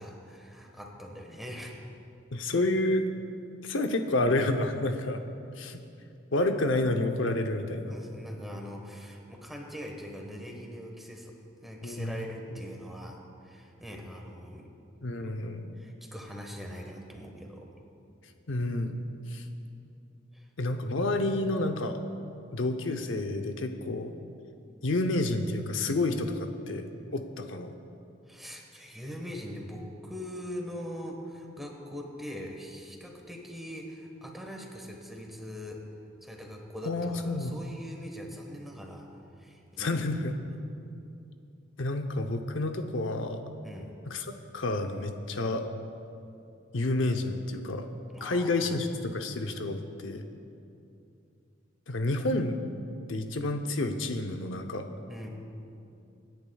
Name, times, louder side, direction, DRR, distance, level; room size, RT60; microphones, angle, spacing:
voice 1, 0.0-1.8 7.9-11.3 11.6-14.7 15.1-15.3 15.8-17.7 20.3-20.5 28.3-35.8 36.2-39.1 39.4-40.0 40.5-40.6 43.6-43.9 48.1-48.6 55.1-55.3, equal, ahead, 1 dB, 1.3 m, -42 dB
voice 2, 2.3-3.0 3.6-5.2 5.5-5.8 6.3-8.0 11.8-12.3 15.0-15.8 18.5-19.0 19.3-19.4 20.6-22.0 22.5-24.1 24.8-27.7 36.8-37.6 39.8-40.4 41.8-43.4 44.1-44.3 44.5-45.6 46.7-47.9 48.2-50.2 51.9-52.6 53.1-54.9, left 2 dB, 80° left, 6 dB, 0.7 m, -29 dB
25.0 x 10.5 x 2.3 m, 2.6 s
head